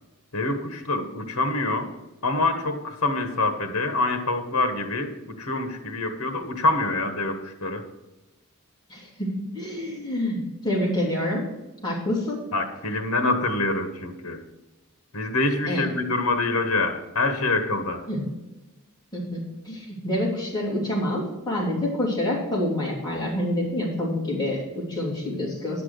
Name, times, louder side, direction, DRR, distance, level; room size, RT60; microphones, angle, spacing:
voice 1, 0.3-1.9 2.2-7.8 12.5-14.4 15.1-18.1, left 2 dB, 75° left, 7 dB, 1.4 m, -26 dB
voice 2, 8.9-11.4 11.8-12.4 15.7-15.8 18.1-18.2 19.1-19.4 19.6-25.8, left 1 dB, 20° left, -5 dB, 3.2 m, -27 dB
10.0 x 6.1 x 6.6 m, 1.1 s
head